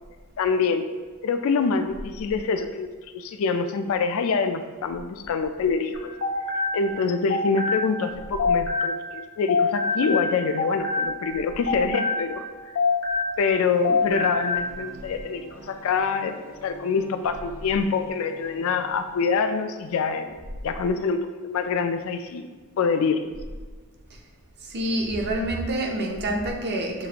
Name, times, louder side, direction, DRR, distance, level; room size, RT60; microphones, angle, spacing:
voice 1, 0.4-0.9 1.2-6.1 6.7-12.4 13.4-20.3 20.6-22.4 22.8-23.3, left 5 dB, 65° left, 8 dB, 0.3 m, -25 dB
sound 1, 5.9-9.2 9.5-13.6 13.8-14.7, left 4 dB, 90° left, 0.8 m, -26 dB
sound 2, 13.5-20.4, right 1 dB, 85° right, 0.8 m, -47 dB
voice 2, 24.6-27.1, right 1 dB, 50° right, 2 dB, 0.6 m, -27 dB
6.7 x 2.4 x 2.8 m, 1.4 s
head